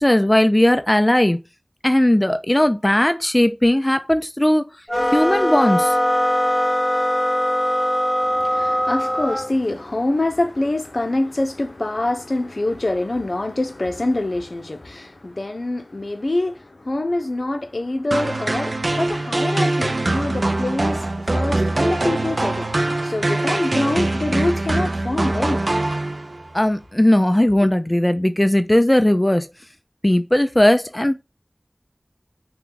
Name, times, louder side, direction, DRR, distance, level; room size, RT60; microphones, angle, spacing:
voice 1, 0.0-1.4 1.8-4.6 5.1-6.0 26.5-29.5 30.0-31.2, left 1 dB, 25° left, 0.5 m, -17 dB
sound 1, 4.9-9.5, equal, 5° left, 1.3 m, -21 dB
voice 2, 8.3-22.7 23.0-25.6 27.6-27.7, left 2 dB, 75° left, 0.7 m, -25 dB
sound 2, 18.1-26.5, right 2 dB, 85° right, 0.5 m, -23 dB
5.9 x 2.3 x 3.9 m
wide cardioid pair, 45°, 0 cm